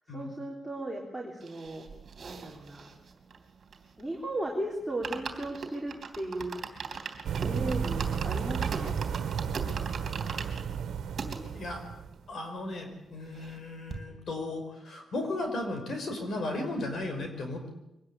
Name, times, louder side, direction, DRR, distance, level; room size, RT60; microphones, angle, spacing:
voice 1, 0.1-1.8 2.2-2.9 4.0-6.8 7.4-9.2, right 1 dB, 5° right, -2 dB, 3.5 m, -36 dB
sound 1, 1.4-4.2 4.5-4.6 4.9-11.4 12.0-12.1 12.2-12.3 12.7-13.6 13.9-14.0, right 5 dB, 45° right, 3.4 m, -40 dB
sound 2, 7.2-12.2, right 7 dB, 75° right, 1.7 m, -33 dB
voice 2, 12.3-17.7, left 2 dB, 50° left, 5 dB, 6.0 m, -35 dB
23.5 x 19.5 x 8.6 m, 0.88 s
wide cardioid pair, 155°, 0 cm